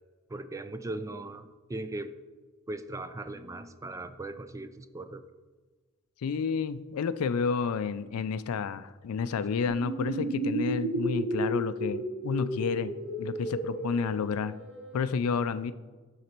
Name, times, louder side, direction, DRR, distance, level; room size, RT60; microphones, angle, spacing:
voice 1, 0.3-2.1 2.7-5.2, right 2 dB, 15° right, 10 dB, 0.3 m, -38 dB
voice 2, 6.2-14.6 14.9-15.7, left 5 dB, 75° left, 14 dB, 0.4 m, -30 dB
sound 1, 9.7-15.0, right 1 dB, 60° right, 2.6 m, -33 dB
11.5 x 4.0 x 4.4 m, 1.4 s
head